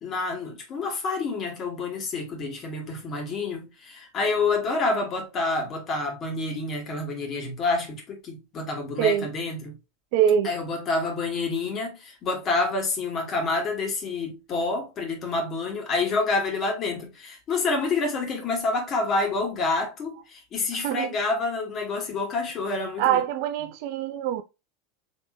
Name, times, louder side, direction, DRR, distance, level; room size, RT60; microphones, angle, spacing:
voice 1, 0.0-9.8 10.4-23.2, left 3 dB, 35° left, 1.8 m, -28 dB
voice 2, 10.1-10.5 20.8-21.1 23.0-24.4, right 9 dB, 50° right, 0.4 m, -23 dB
4.2 x 3.4 x 2.5 m
figure-of-eight pair, 85°, 0 cm